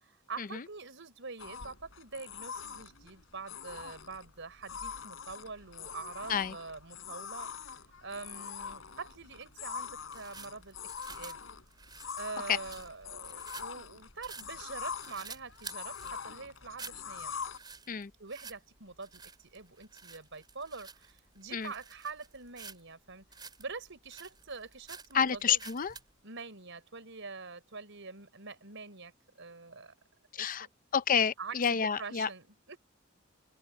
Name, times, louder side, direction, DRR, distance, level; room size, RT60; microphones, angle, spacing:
voice 1, 0.0-11.4 12.1-17.3 18.2-25.6 26.2-29.1 29.4-29.9 30.4-30.7 31.4-32.8, right 4 dB, 65° right, 5.6 m, -45 dB
sound 1, 1.4-17.6, left 6 dB, 75° left, 4.1 m, -44 dB
sound 2, 8.9-26.1, right 5 dB, 20° right, 4.1 m, -51 dB
voice 2, 25.1-25.9 30.3-30.7 30.9-32.3, left 7 dB, 40° left, 0.6 m, -29 dB
open air
head